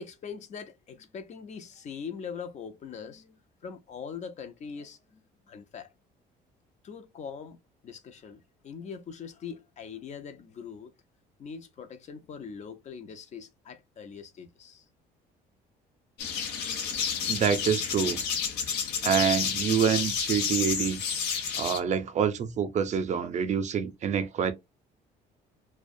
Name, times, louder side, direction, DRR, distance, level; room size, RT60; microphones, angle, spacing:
voice 1, 0.0-5.2 5.5-5.9 6.8-7.6 7.8-10.9 11.4-14.9, left 6 dB, 45° left, 0.5 m, -42 dB
sound 1, 16.2-21.8, left 7 dB, 90° left, 0.6 m, -30 dB
voice 2, 17.3-18.2 19.0-21.0 21.6-24.5, right 7 dB, 45° right, 0.4 m, -26 dB
2.3 x 2.1 x 2.5 m
cardioid pair, 110°, 17 cm